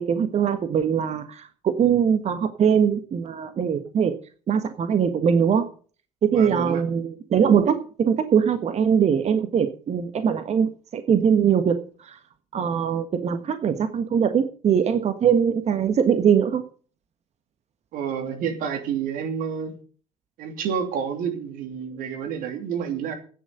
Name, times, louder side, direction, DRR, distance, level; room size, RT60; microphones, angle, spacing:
voice 1, 0.0-4.1 4.5-5.7 6.2-12.2 12.5-16.6, right 7 dB, 40° right, 1.5 m, -22 dB
voice 2, 6.3-6.8 17.9-19.8 20.4-23.1, right 7 dB, 60° right, 3.0 m, -29 dB
10.5 x 9.5 x 6.8 m
hypercardioid pair, 60°, 16 cm